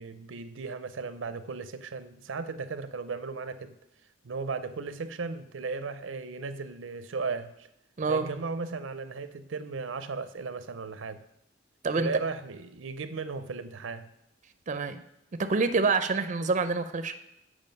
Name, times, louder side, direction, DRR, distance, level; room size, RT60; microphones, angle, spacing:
voice 1, 0.0-3.7 4.2-7.7 8.1-11.2 12.0-14.1, right 4 dB, 90° right, 12 dB, 0.6 m, -36 dB
voice 2, 8.0-8.3 11.8-12.1 14.7-15.0 15.5-17.1, right 4 dB, 40° right, 10 dB, 0.5 m, -26 dB
7.5 x 4.9 x 5.3 m, 0.82 s
head